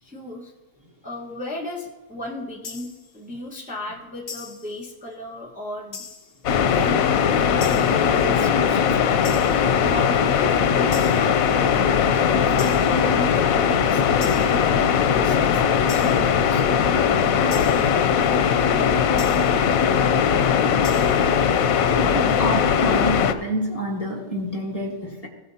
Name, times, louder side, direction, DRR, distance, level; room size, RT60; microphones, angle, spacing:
voice 1, 0.0-0.5 1.0-6.0 6.7-9.2 9.8-16.6, left 1 dB, 5° right, -3 dB, 1.2 m, -36 dB
sound 1, 2.6-3.1 4.3-4.8 5.9-6.4 7.6-8.1 9.2-9.7 10.9-11.4 12.6-13.1 14.2-14.7 15.9-16.4 17.5-18.0 19.2-19.6 20.8-21.3, left 5 dB, 50° left, 1.1 m, -39 dB
sound 2, 6.4-23.3, left 7 dB, 90° left, 1.1 m, -19 dB
voice 2, 22.1-25.3, equal, 25° left, -2 dB, 1.6 m, -27 dB
17.0 x 9.0 x 2.8 m, 1.2 s
omnidirectional pair, 1.4 m